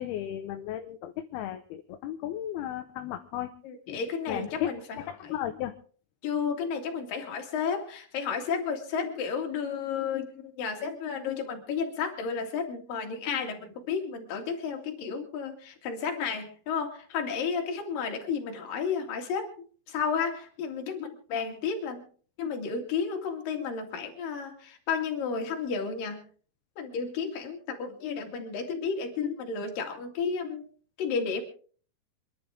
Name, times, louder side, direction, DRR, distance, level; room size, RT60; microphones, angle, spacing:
voice 1, 0.0-3.5 4.3-5.7, left 12 dB, 80° left, 6 dB, 2.8 m, -35 dB
voice 2, 3.6-5.4 6.2-19.5 19.9-22.0 22.4-26.2 26.8-30.6 31.0-31.4, left 6 dB, 60° left, 3 dB, 3.8 m, -32 dB
26.5 x 11.0 x 3.7 m, 0.44 s
omnidirectional pair, 4.5 m